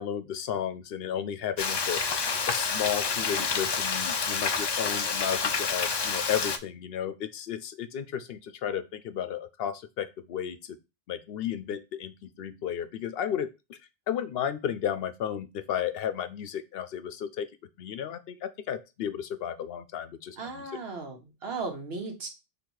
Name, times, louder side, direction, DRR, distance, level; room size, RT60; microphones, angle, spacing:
voice 1, 0.0-10.8 11.1-13.8 14.1-17.5 17.8-20.7, left 9 dB, 70° left, 11 dB, 0.8 m, -33 dB
Frying (food), 1.6-6.6, left 5 dB, 40° left, 0.3 m, -28 dB
voice 2, 20.4-22.3, right 4 dB, 80° right, 3 dB, 1.3 m, -36 dB
4.0 x 2.9 x 4.6 m, 0.26 s
omnidirectional pair, 1.0 m